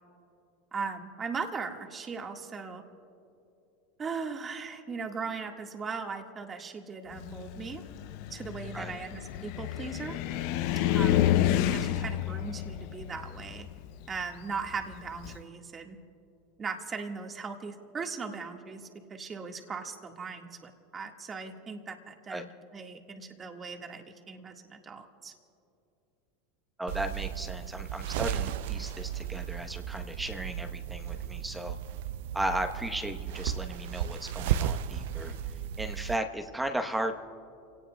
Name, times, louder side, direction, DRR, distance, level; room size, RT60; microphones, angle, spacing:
voice 1, 0.7-2.8 4.0-7.8 8.3-10.2 10.9-11.3 11.6-13.7 14.1-16.0 16.6-25.3, right 5 dB, 30° right, 3 dB, 1.8 m, -38 dB
Car, 7.2-15.4, left 12 dB, 65° left, 0.6 m, -30 dB
voice 2, 26.8-31.8 32.3-35.3 35.8-37.1, right 1 dB, 10° right, 6 dB, 1.1 m, -35 dB
sound 1, 26.9-36.2, right 10 dB, 70° right, 0.5 m, -35 dB
30.0 x 18.0 x 2.3 m, 2.7 s
hypercardioid pair, 90°, 0 cm